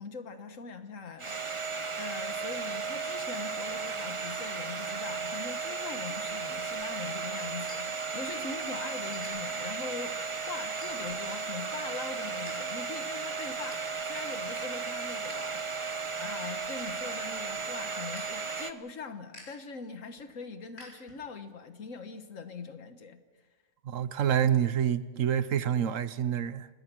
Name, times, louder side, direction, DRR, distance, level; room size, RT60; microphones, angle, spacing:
voice 1, 0.0-1.7 2.0-10.2 10.5-15.9 16.2-23.2, left 4 dB, 85° left, 1.7 m, -42 dB
Domestic sounds home sounds, 1.2-18.7, right 4 dB, 25° right, 0.9 m, -35 dB
sound 1, 7.6-8.6 8.9-9.3 9.9-10.1 10.6-11.3 11.7-12.6 12.8-12.9 13.3-13.9 14.4-15.4 15.7-21.5, left 1 dB, 70° left, 6.0 m, -54 dB
voice 2, 23.8-26.7, right 9 dB, 85° right, 1.3 m, -27 dB
27.0 x 20.0 x 6.2 m
omnidirectional pair, 1.3 m